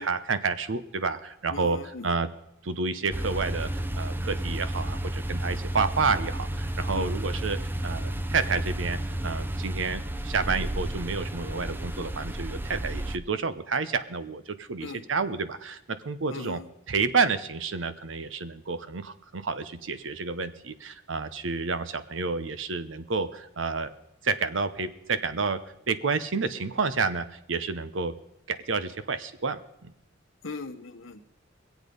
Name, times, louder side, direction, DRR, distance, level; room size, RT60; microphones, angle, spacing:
voice 1, 0.0-2.3 2.6-16.6 16.9-23.9 24.2-25.6 25.9-28.1 28.5-29.9, right 4 dB, 70° right, 13 dB, 0.8 m, -30 dB
voice 2, 1.5-2.2 6.9-7.1 14.8-15.0 16.3-16.6 30.4-31.3, left 3 dB, 80° left, 9 dB, 1.0 m, -39 dB
sound 1, 3.1-13.2, right 1 dB, 10° right, 0.5 m, -32 dB
22.0 x 8.3 x 5.2 m, 0.81 s
head